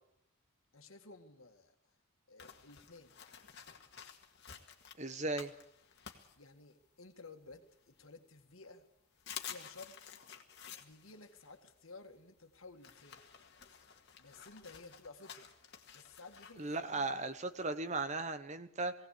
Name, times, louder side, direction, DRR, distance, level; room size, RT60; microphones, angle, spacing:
voice 1, 0.7-1.8 2.3-3.2 6.4-8.9 9.4-10.0 10.8-13.2 14.2-15.5 15.9-17.1, left 3 dB, 70° left, 6 dB, 2.0 m, -55 dB
sound 1, 2.4-7.0 7.5-8.4 8.8-8.9 9.2-18.0, left 8 dB, 50° left, 1.9 m, -52 dB
voice 2, 5.0-5.5 16.6-18.9, right 3 dB, 35° right, 11 dB, 1.0 m, -37 dB
20.0 x 17.5 x 8.5 m, 0.75 s
head